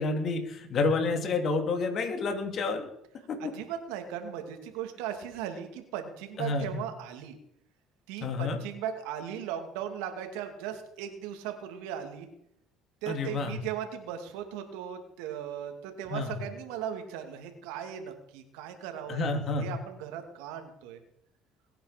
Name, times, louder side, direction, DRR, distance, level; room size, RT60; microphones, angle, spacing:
voice 1, 0.0-2.9 6.4-6.8 8.2-8.6 13.1-13.6 16.1-16.3 19.1-19.6, left 3 dB, 50° left, 5 dB, 3.0 m, -29 dB
voice 2, 3.4-7.3 8.1-12.3 13.0-21.0, right 9 dB, 85° right, 6 dB, 2.5 m, -38 dB
21.0 x 9.3 x 5.2 m, 0.77 s
supercardioid pair, 90°, 0 cm